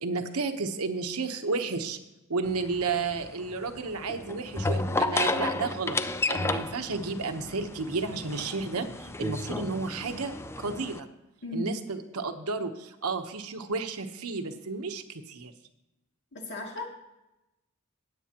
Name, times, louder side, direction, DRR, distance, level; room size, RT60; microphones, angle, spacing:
voice 1, 0.0-2.0 2.3-6.0 6.3-11.1 11.5-15.5, right 4 dB, 85° right, 6 dB, 1.0 m, -32 dB
sound 1, 2.4-11.0, left 2 dB, 10° left, 0.4 m, -32 dB
voice 2, 11.4-11.7 16.3-16.9, left 1 dB, 55° left, -1 dB, 2.4 m, -35 dB
16.0 x 9.4 x 2.9 m, 0.95 s
head